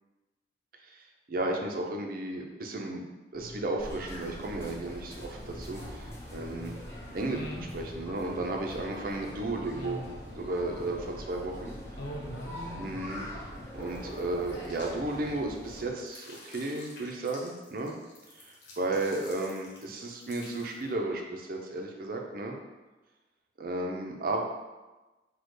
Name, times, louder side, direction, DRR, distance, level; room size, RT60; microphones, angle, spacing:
voice 1, 1.3-3.0 3.3-6.7 7.1-7.4 7.7-10.0 10.4-11.7 12.7-13.2 13.7-17.9 18.3-22.5 23.6-24.4, right 2 dB, 55° right, 1 dB, 0.6 m, -34 dB
sound 1, 3.3-14.6, equal, 20° right, 0.9 m, -49 dB
sound 2, 3.8-15.9, equal, 15° left, 0.9 m, -44 dB
voice 2, 7.3-7.6 9.7-10.0 12.0-13.2, equal, 55° left, 0 dB, 0.7 m, -40 dB
sound 3, 13.7-15.7 16.0-20.9, left 2 dB, 80° left, 1.1 m, -52 dB
4.2 x 2.3 x 4.7 m, 1.1 s
head